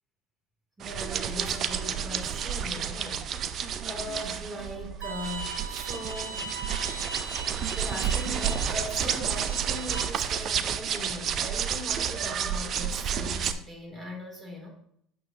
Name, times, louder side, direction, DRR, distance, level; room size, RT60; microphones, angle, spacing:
voice 1, 0.8-6.5 7.3-14.7, left 1 dB, 25° right, 1 dB, 3.0 m, -40 dB
sound 1, 0.8-13.5, right 8 dB, 50° right, 0.6 m, -31 dB
Bowed string instrument, 5.0-10.0, right 3 dB, 85° right, 1.2 m, -39 dB
8.7 x 6.3 x 2.9 m, 0.71 s
hypercardioid pair, 75°, 0 cm